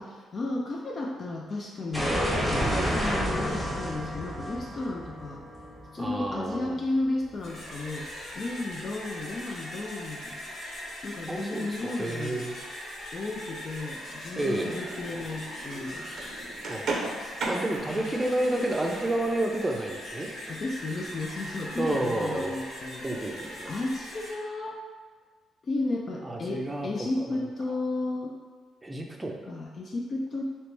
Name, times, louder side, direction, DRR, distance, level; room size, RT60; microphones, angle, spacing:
voice 1, 0.0-2.2 2.9-5.4 5.9-8.1 8.3-10.4 11.0-12.5 13.1-16.1 17.9-18.0 20.5-23.1 23.6-24.8 25.6-28.4 29.5-30.4, left 2 dB, 45° left, -1 dB, 0.4 m, -33 dB
sound 1, 1.9-6.7, equal, 5° left, 1.0 m, -30 dB
voice 2, 2.5-3.0 6.0-6.8 11.3-12.6 14.4-14.8 16.7-17.0 17.5-20.3 21.8-22.5 23.0-23.7 26.2-27.4 28.8-29.4, right 1 dB, 15° right, 1 dB, 0.5 m, -30 dB
sound 2, 7.3-24.3, equal, 65° left, 1.0 m, -41 dB
sound 3, 14.4-20.6, right 2 dB, 65° right, 0.5 m, -38 dB
3.2 x 2.9 x 3.1 m, 1.5 s
cardioid pair, 90°, 0 cm